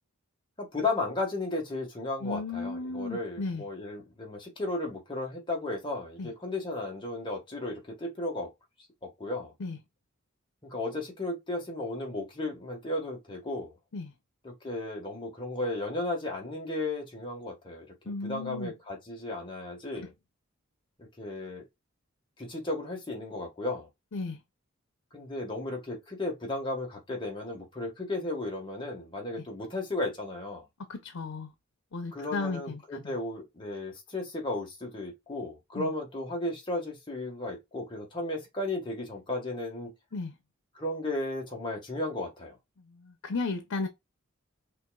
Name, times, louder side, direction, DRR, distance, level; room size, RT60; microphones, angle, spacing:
voice 1, 0.6-8.5 9.0-9.5 10.6-13.7 14.4-17.9 18.2-20.1 21.0-21.6 22.4-23.9 25.1-30.6 32.1-39.9 40.7-42.6, left 2 dB, 25° left, 1.5 m, -34 dB
voice 2, 2.2-3.6 6.2-6.3 9.6-9.8 13.9-14.1 18.1-18.7 20.0-20.1 24.1-24.4 30.9-31.5 31.9-33.0 35.7-35.9 40.1-40.3 42.9-43.9, left 3 dB, 90° left, 0.7 m, -34 dB
5.5 x 3.0 x 2.4 m
head